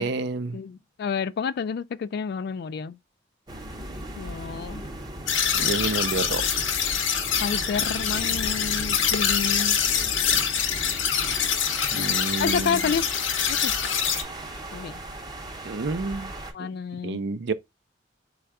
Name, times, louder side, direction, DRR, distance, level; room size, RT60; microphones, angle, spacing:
voice 1, 0.0-0.6 5.5-6.4 11.9-12.9 15.6-16.7 17.0-17.5, right 3 dB, 65° right, 0.5 m, -29 dB
voice 2, 0.5-3.0 4.2-4.8 7.4-9.8 12.0-12.1 12.4-13.1 13.5-13.7 14.7-15.0 16.5-17.2, left 6 dB, 55° left, 0.3 m, -29 dB
sound 1, 3.5-16.5, right 1 dB, 20° right, 0.7 m, -37 dB
sound 2, 5.3-14.2, left 8 dB, 80° left, 0.7 m, -25 dB
4.3 x 2.3 x 4.7 m
head